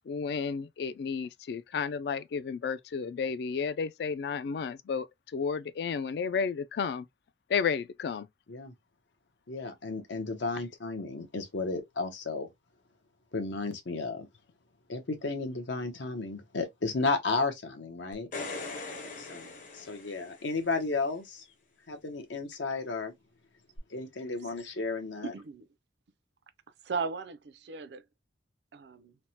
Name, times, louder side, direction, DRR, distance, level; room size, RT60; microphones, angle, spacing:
voice 1, 0.1-5.1 5.3-7.1 7.5-8.3, left 6 dB, 60° left, 0.3 m, -32 dB
voice 2, 9.5-12.5 13.3-14.3 14.9-18.3 19.2-21.4 21.9-23.1 23.9-25.3, left 3 dB, 85° left, 0.8 m, -33 dB
sound 1, 18.1-20.7 23.8-23.9, left 3 dB, 45° left, 0.7 m, -40 dB
voice 3, 25.2-25.7 26.8-28.0 28.7-29.2, right 5 dB, 65° right, 0.4 m, -36 dB
3.3 x 2.1 x 2.7 m
head